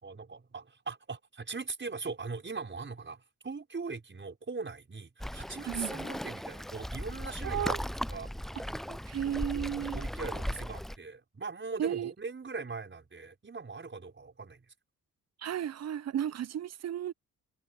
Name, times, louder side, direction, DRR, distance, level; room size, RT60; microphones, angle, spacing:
voice 1, 0.0-7.7 8.1-8.3 8.9-9.0 9.9-14.6, right 4 dB, 35° right, 5.5 m, -40 dB
Waves surf, 5.2-11.0, equal, ahead, 0.4 m, -37 dB
voice 2, 7.4-7.8 9.1-10.1 11.8-12.1 15.4-17.1, right 10 dB, 50° right, 0.6 m, -33 dB
cardioid pair, 65°, 34 cm